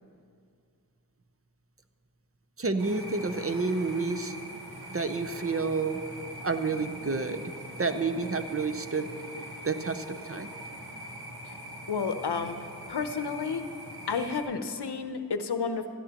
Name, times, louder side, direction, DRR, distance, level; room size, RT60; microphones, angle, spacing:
voice 1, 2.6-4.3 4.9-6.0 6.4-7.4 7.8-9.1 9.6-10.5, right 4 dB, 35° right, 9 dB, 0.7 m, -29 dB
sound 1, 2.8-14.4, right 1 dB, 70° right, 1.6 m, -43 dB
voice 2, 11.9-12.6 12.9-13.7 14.1-15.9, left 5 dB, 85° left, 9 dB, 0.7 m, -31 dB
17.0 x 13.0 x 2.9 m, 2.4 s
wide cardioid pair, 50°, 39 cm